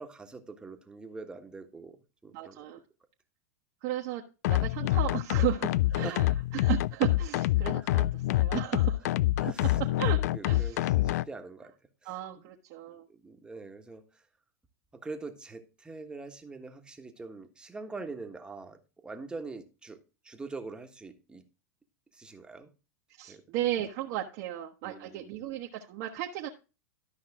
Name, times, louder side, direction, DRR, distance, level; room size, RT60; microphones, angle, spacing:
voice 1, 0.0-2.0 2.2-2.6 6.0-6.2 7.7-7.9 9.4-9.8 10.1-11.7 12.0-12.2 13.1-14.2 14.9-20.0 20.2-21.4 22.1-22.7 23.3-23.4 24.8-25.3, right 3 dB, 10° right, 6 dB, 1.4 m, -44 dB
voice 2, 2.3-2.8 3.8-4.2 4.5-9.0 10.0-10.2 10.4-10.8 12.0-13.1 23.2-26.5, right 13 dB, 55° right, 1 dB, 1.2 m, -34 dB
sound 1, 4.4-11.3, left 16 dB, 70° left, 0.4 m, -26 dB
12.5 x 5.6 x 3.5 m, 0.31 s
hypercardioid pair, 120°, 9 cm